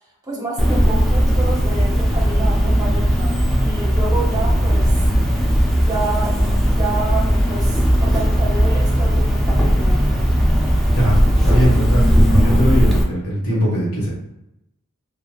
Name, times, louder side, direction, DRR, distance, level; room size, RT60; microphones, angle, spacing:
voice 1, 0.2-5.0 5.8-10.0, right 2 dB, 15° right, -3 dB, 0.7 m, -29 dB
Cricket, 0.6-13.0, equal, ahead, 0.3 m, -17 dB
voice 2, 11.4-14.1, equal, 85° left, -5 dB, 1.4 m, -20 dB
3.0 x 2.4 x 2.3 m, 0.85 s
head